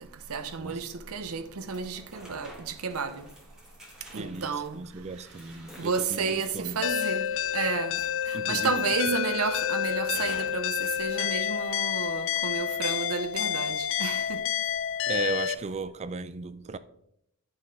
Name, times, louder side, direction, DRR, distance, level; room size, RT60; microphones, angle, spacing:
voice 1, 0.3-3.3 4.1-4.8 5.8-7.3 7.5-8.0 8.3-14.4, right 5 dB, 75° right, 0.7 m, -31 dB
sound 1, 1.7-8.4 8.8-9.4 10.1-11.1, equal, 5° right, 1.5 m, -51 dB
voice 2, 4.1-6.8 8.3-8.8 15.1-16.8, right 4 dB, 30° right, 0.4 m, -36 dB
sound 2, 6.8-15.5, left 10 dB, 60° left, 0.3 m, -29 dB
10.0 x 5.6 x 3.3 m
head